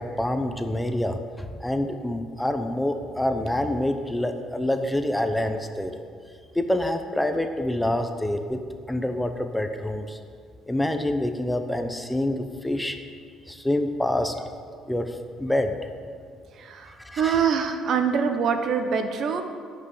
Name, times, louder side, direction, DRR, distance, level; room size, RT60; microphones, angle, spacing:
voice 1, 0.0-5.9 6.5-8.6 8.9-10.2 10.7-13.0 13.5-14.3 14.9-15.7 17.0-17.4, left 1 dB, 5° left, 7 dB, 0.9 m, -26 dB
voice 2, 16.6-19.4, right 6 dB, 60° right, 7 dB, 1.1 m, -24 dB
10.5 x 6.1 x 8.3 m, 2.2 s
supercardioid pair, 90°, 0 cm